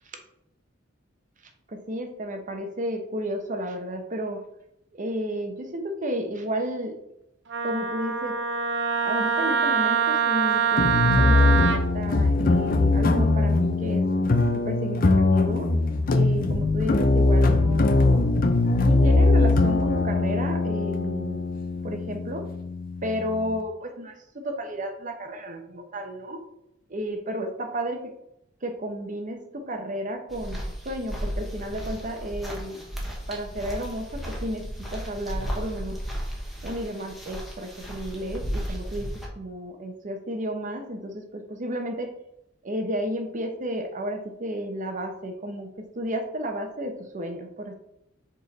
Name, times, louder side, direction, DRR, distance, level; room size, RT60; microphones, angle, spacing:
voice 1, 1.7-4.5 5.0-7.0 7.6-8.4 9.0-14.0 14.7-15.7 16.1-18.1 18.8-21.4 21.8-22.5 23.0-26.4 26.9-28.0 28.6-30.6 30.8-32.8 33.3-36.0 36.6-42.1 42.6-47.7, equal, 45° right, 5 dB, 0.9 m, -32 dB
Wind instrument woodwind instrument, 7.5-11.8, right 7 dB, 65° right, 0.6 m, -24 dB
sound 1, 10.8-23.6, left 2 dB, 50° left, 0.6 m, -21 dB
sound 2, 30.3-39.3, equal, ahead, 1.3 m, -34 dB
5.2 x 4.4 x 4.1 m, 0.81 s
head